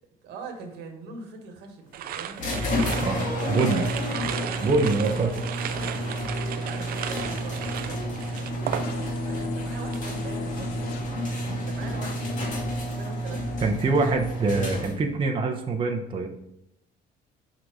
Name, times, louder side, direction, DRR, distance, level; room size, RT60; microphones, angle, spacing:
voice 1, 0.2-2.5 3.5-3.9 5.7-6.0 6.5-11.0 11.6-12.4 12.8-13.6, right 4 dB, 80° right, 3 dB, 1.4 m, -42 dB
sound 1, 1.9-9.3 9.6-10.1, right 10 dB, 60° right, 0.5 m, -35 dB
sound 2, 2.4-15.2, equal, 50° left, 2.1 m, -30 dB
voice 2, 3.0-3.8 4.6-5.5 13.6-16.3, right 3 dB, 30° right, 1 dB, 0.8 m, -24 dB
sound 3, 8.8-11.0, left 9 dB, 75° left, 0.6 m, -38 dB
6.2 x 3.9 x 4.9 m, 0.81 s
cardioid pair, 110°, 17 cm